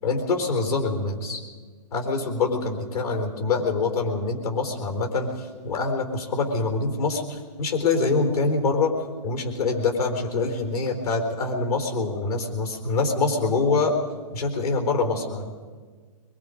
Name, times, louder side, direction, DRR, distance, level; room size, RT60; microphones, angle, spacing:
voice 1, 0.0-1.4 1.9-8.9 9.2-14.0 14.3-15.5, left 3 dB, 70° left, 4 dB, 4.3 m, -25 dB
23.0 x 22.5 x 5.3 m, 1.5 s
hypercardioid pair, 150°, 20 cm